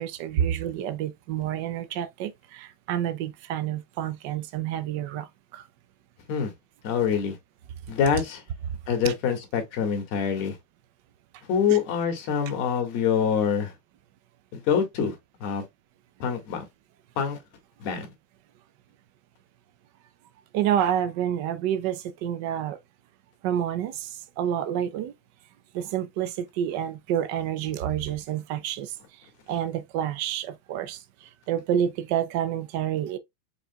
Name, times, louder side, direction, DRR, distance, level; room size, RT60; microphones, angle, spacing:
voice 1, 0.0-5.7 9.0-9.1 11.7-11.8 20.5-22.8 23.4-25.1 25.7-29.0 29.5-33.2, right 10 dB, 50° right, 0.5 m, -29 dB
voice 2, 6.8-7.4 7.9-8.4 8.9-10.6 11.4-13.7 14.5-15.2 15.4-15.6 16.2-16.6 17.2-17.4 17.8-18.1, left 7 dB, 45° left, 1.7 m, -25 dB
4.9 x 3.9 x 2.3 m
supercardioid pair, 160°, 0 cm